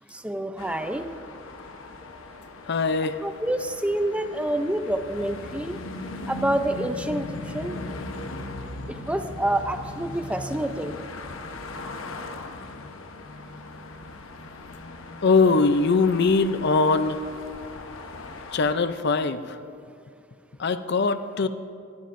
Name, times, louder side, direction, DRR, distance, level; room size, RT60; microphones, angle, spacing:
voice 1, 0.1-1.1 3.2-5.8 6.3-7.3 7.5-7.8 9.1-10.9, right 1 dB, 5° right, 7 dB, 0.5 m, -27 dB
sound 1, 0.6-18.7, left 2 dB, 80° left, 1.0 m, -39 dB
voice 2, 2.7-3.2 15.2-17.2 18.5-19.6 20.6-21.5, left 4 dB, 55° left, 11 dB, 0.5 m, -21 dB
22.0 x 16.5 x 2.6 m, 2.4 s
head